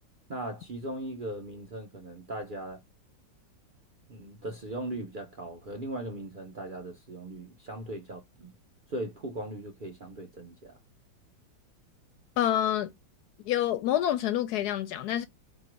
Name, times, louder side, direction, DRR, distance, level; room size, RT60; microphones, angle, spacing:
voice 1, 0.3-2.8 4.1-8.5 8.9-10.7, right 1 dB, 85° right, 0.4 m, -38 dB
voice 2, 12.4-12.9 13.5-15.3, left 11 dB, 70° left, 0.9 m, -27 dB
4.4 x 2.3 x 4.3 m
omnidirectional pair, 2.0 m